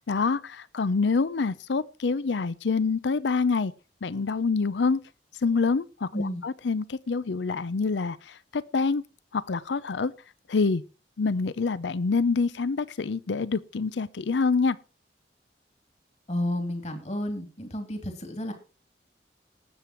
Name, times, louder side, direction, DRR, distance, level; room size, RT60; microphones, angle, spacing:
voice 1, 0.1-3.7 4.0-5.0 5.4-9.0 9.3-10.1 10.5-10.8 11.2-14.8, left 4 dB, 90° left, 0.6 m, -26 dB
voice 2, 16.3-18.5, left 1 dB, 40° left, 3.1 m, -31 dB
18.5 x 7.6 x 4.4 m
head